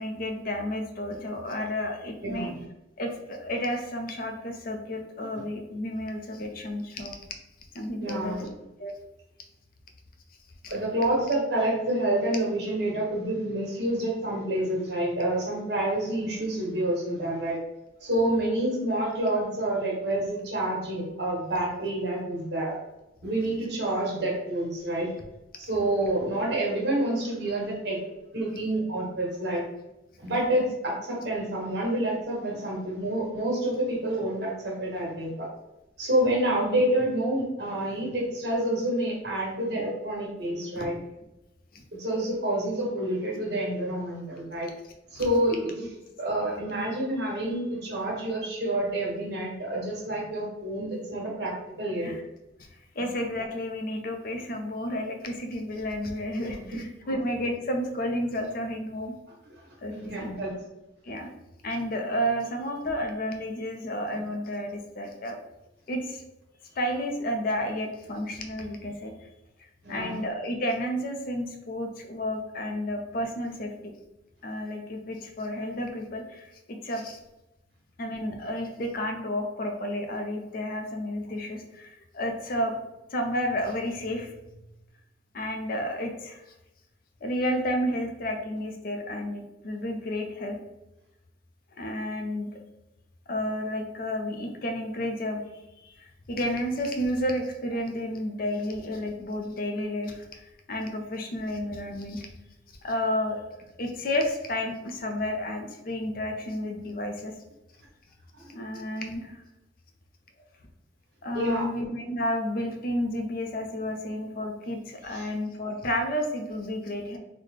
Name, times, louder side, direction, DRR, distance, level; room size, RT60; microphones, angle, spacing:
voice 1, 0.0-2.5 3.0-7.1 7.7-8.5 8.8-8.9 10.6-10.7 40.7-40.9 41.7-41.8 45.2-45.3 52.0-52.2 52.9-59.1 59.8-60.3 61.0-61.3 61.6-65.4 65.9-66.2 66.7-69.3 69.6-73.9 74.4-77.2 78.0-82.7 83.1-84.6 85.3-86.5 87.2-90.6 91.7-92.5 93.3-95.4 95.8-102.3 102.8-103.4 103.8-107.3 108.5-109.4 111.2-117.2, left 1 dB, 55° left, 4 dB, 0.5 m, -31 dB
voice 2, 2.2-2.6 8.0-8.5 10.7-17.6 18.0-22.8 23.2-25.1 25.6-28.0 28.3-29.7 30.2-35.5 36.0-40.9 42.0-44.7 45.1-45.7 46.2-52.1 56.6-56.7 57.0-57.2 59.9-60.5 69.8-70.2 108.4-108.5 111.3-111.6 115.1-115.3, right 1 dB, 65° right, -3 dB, 1.3 m, -28 dB
4.0 x 2.1 x 3.2 m, 0.94 s
head